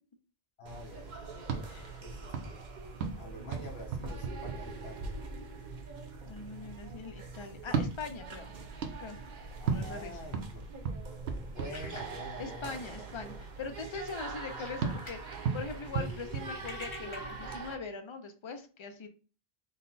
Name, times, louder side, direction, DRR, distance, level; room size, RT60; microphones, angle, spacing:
voice 1, 0.6-1.4 2.0-2.6 3.2-5.2 9.6-10.7 11.4-13.1, left 1 dB, 80° left, 1 dB, 1.1 m, -46 dB
sound 1, 0.7-17.8, right 3 dB, 50° right, 0.7 m, -44 dB
sound 2, 1.4-5.2 7.6-12.5 14.8-17.2, right 5 dB, 85° right, 0.9 m, -37 dB
voice 2, 1.7-2.0 6.3-8.6 9.0-9.2 9.6-10.1 12.4-19.1, left 4 dB, 50° left, 7 dB, 0.3 m, -42 dB
sound 3, 11.7-13.1 13.4-13.6 13.9-15.3 15.6-17.6, left 2 dB, 30° left, 0.7 m, -49 dB
3.8 x 2.1 x 3.9 m, 0.37 s
omnidirectional pair, 1.0 m